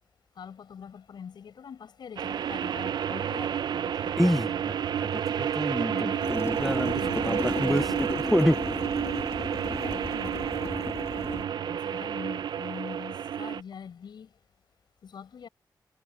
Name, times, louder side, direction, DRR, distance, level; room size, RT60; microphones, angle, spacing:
voice 1, 0.4-4.6 5.9-8.0 9.7-14.3 15.0-15.5, left 7 dB, 90° left, 6.9 m, -44 dB
sound 1, 2.2-13.6, right 9 dB, 80° right, 0.4 m, -30 dB
voice 2, 4.2-6.9 7.2-8.6, equal, 5° left, 0.3 m, -28 dB
sound 2, 6.2-11.4, left 3 dB, 40° left, 2.2 m, -36 dB
wide cardioid pair, 95°, 7 cm